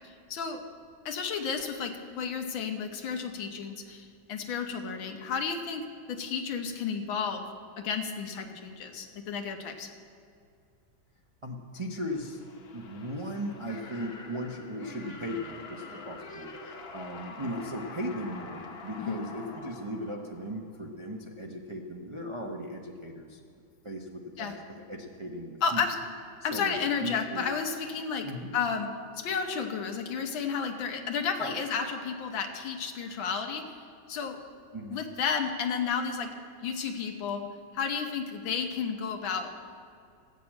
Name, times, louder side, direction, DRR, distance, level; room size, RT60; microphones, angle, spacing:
voice 1, 0.3-0.6 1.0-7.4 7.8-9.9 19.0-19.2 24.4-24.5 25.6-26.0 26.4-28.3 28.5-28.9 29.2-33.8 34.1-34.4 34.9-36.3 36.6-39.5, left 6 dB, 85° left, 5 dB, 1.8 m, -32 dB
voice 2, 11.4-12.4 12.7-23.4 23.8-24.6 24.9-25.8 26.4-27.5 28.2-28.5 31.4-31.6 34.7-35.0, equal, 50° right, 0 dB, 0.3 m, -37 dB
sound 1, 12.1-20.9, left 3 dB, 45° left, 0.9 m, -46 dB
14.0 x 6.7 x 8.7 m, 2.3 s
omnidirectional pair, 2.1 m